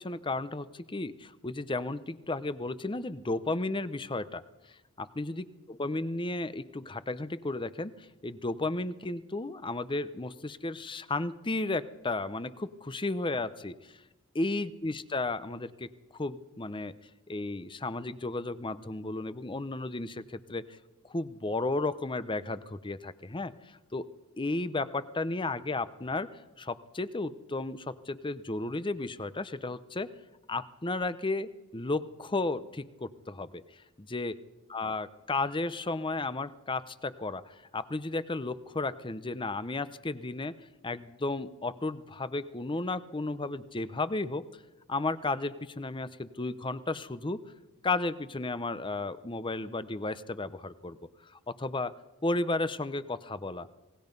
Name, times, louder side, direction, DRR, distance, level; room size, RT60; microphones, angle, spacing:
voice 1, 0.0-4.4 4.7-14.0 14.3-16.9 17.3-20.7 21.0-24.1 24.4-26.3 26.6-30.1 30.5-33.6 34.0-34.4 34.7-40.5 40.8-44.5 44.9-47.4 47.8-51.9 52.2-53.7, left 2 dB, 20° left, 14 dB, 0.8 m, -33 dB
27.0 x 19.5 x 5.4 m, 1.0 s
head